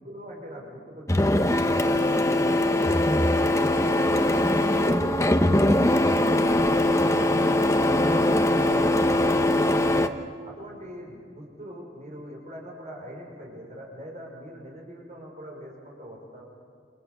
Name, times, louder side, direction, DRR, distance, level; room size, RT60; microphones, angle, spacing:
voice 1, 0.0-3.4 3.7-6.7 7.6-9.9 10.4-16.4, equal, 40° right, -1 dB, 5.7 m, -42 dB
Printer, 1.1-10.1, left 1 dB, 15° left, 1.0 m, -21 dB
29.5 x 27.0 x 6.8 m, 2.2 s
head